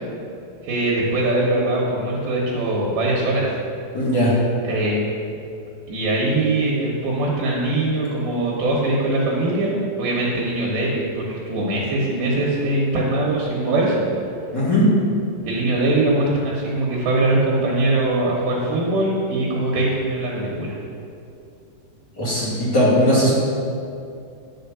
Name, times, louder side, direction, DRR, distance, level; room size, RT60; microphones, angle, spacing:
voice 1, 0.6-3.5 4.6-5.3 5.9-14.1 15.4-20.8, right 2 dB, 70° right, -3 dB, 2.8 m, -22 dB
voice 2, 3.9-4.3 14.5-14.8 22.2-23.3, equal, 30° left, -8 dB, 2.1 m, -18 dB
10.5 x 5.2 x 6.8 m, 2.6 s
omnidirectional pair, 5.2 m